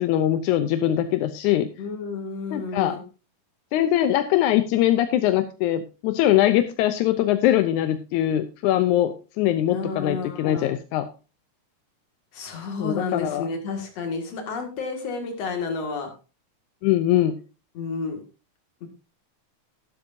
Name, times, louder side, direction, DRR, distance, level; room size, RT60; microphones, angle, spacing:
voice 1, 0.0-1.7 2.5-3.0 3.7-11.1 12.8-13.5 16.8-17.3, left 12 dB, 85° left, 9 dB, 2.1 m, -22 dB
voice 2, 1.8-3.0 9.7-10.7 12.3-16.1 17.7-18.2 18.8-18.9, left 4 dB, 60° left, 3 dB, 3.1 m, -31 dB
12.0 x 11.5 x 2.7 m, 0.33 s
omnidirectional pair, 3.4 m